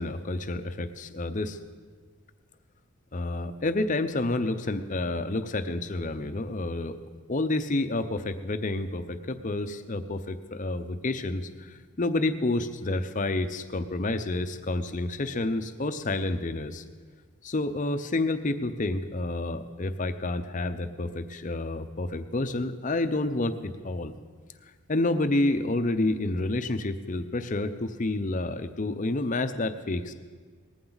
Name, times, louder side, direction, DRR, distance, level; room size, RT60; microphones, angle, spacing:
voice 1, 0.0-1.6 3.1-6.9 7.3-16.8 17.4-24.1 24.9-30.1, left 2 dB, 35° left, 10 dB, 0.6 m, -29 dB
19.5 x 14.5 x 4.0 m, 1.5 s
head